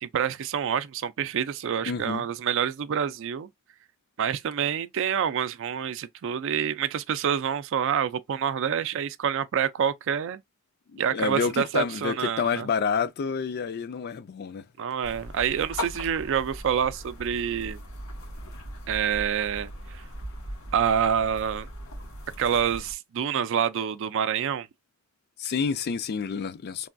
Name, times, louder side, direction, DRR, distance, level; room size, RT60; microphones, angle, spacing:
voice 1, 0.0-3.5 4.2-10.4 11.0-12.7 14.8-17.8 18.9-20.0 20.7-21.7 22.4-24.7, right 8 dB, 60° right, 0.4 m, -27 dB
voice 2, 1.9-2.2 10.9-14.6 25.4-26.9, left 6 dB, 50° left, 0.4 m, -29 dB
sound 1, 15.0-22.9, left 1 dB, 85° left, 1.7 m, -39 dB
3.3 x 2.3 x 2.5 m
head